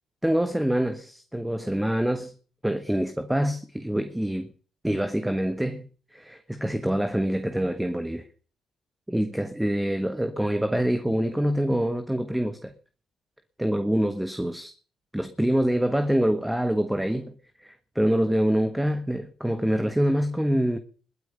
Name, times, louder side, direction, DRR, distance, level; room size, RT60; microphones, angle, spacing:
voice 1, 0.2-2.3 2.6-4.5 4.8-8.3 9.1-12.7 13.6-14.7 15.1-20.8, equal, 5° right, 1.4 m, -25 dB
21.0 x 9.5 x 6.7 m
cardioid pair, 90°, 0 cm